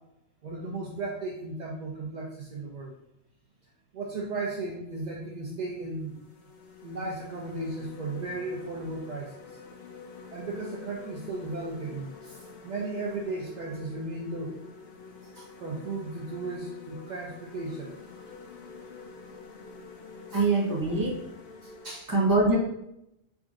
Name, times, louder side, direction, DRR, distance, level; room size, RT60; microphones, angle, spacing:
voice 1, 0.4-3.0 3.9-6.2 6.8-9.6 10.3-14.6 15.3-18.0 20.3-20.4 21.6-22.1, right 2 dB, 65° right, -2 dB, 0.4 m, -35 dB
sound 1, 5.0-5.2 5.7-21.9, left 4 dB, 65° left, 0.7 m, -47 dB
voice 2, 20.3-21.1 22.1-22.6, right 3 dB, 20° right, -3 dB, 0.7 m, -23 dB
3.6 x 2.5 x 3.6 m, 0.82 s
omnidirectional pair, 1.3 m